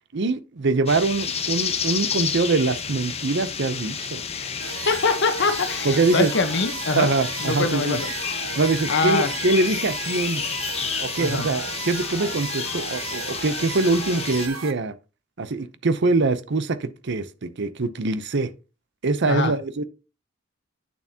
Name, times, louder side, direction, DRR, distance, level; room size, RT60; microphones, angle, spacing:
voice 1, 0.1-4.2 5.8-6.3 6.9-8.0 8.6-10.4 11.0-14.9 15.4-18.5 19.0-19.8, right 3 dB, 60° right, 0.7 m, -23 dB
sound 1, 0.9-14.5, left 6 dB, 30° left, 1.0 m, -30 dB
voice 2, 4.4-7.1 7.4-8.1 8.9-9.3 11.2-11.5 19.2-19.5, left 3 dB, 60° left, 1.1 m, -24 dB
sound 2, 4.6-14.7, right 6 dB, 85° right, 0.9 m, -35 dB
8.8 x 7.0 x 2.8 m
head